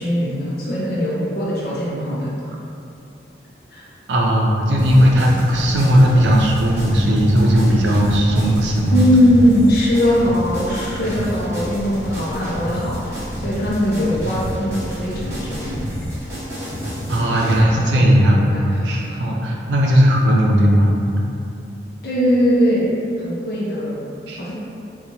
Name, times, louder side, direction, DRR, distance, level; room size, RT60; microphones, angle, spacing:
voice 1, 0.0-2.3 3.7-3.9 8.9-15.8 17.6-18.0 18.4-19.3 19.7-19.9 22.0-22.9 23.2-24.0 24.4-24.5, equal, 55° left, -7 dB, 0.6 m, -20 dB
voice 2, 4.1-9.0 17.1-20.9 24.3-24.4, equal, 80° right, -2 dB, 0.5 m, -16 dB
sound 1, 4.8-17.6, equal, 15° right, 0.9 m, -29 dB
sound 2, 5.5-16.2, equal, 10° left, 1.0 m, -37 dB
4.0 x 2.3 x 2.8 m, 2.7 s
head